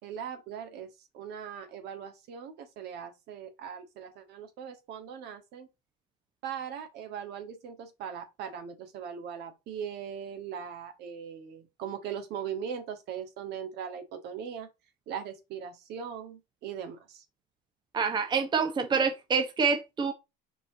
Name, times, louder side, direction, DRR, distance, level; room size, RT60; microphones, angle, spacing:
voice 1, 0.0-0.9 1.1-5.7 6.4-14.7 15.1-17.2, right 8 dB, 60° right, 1.8 m, -40 dB
voice 2, 17.9-20.1, right 5 dB, 25° right, 1.0 m, -27 dB
5.1 x 4.9 x 3.9 m
supercardioid pair, 115°, 19 cm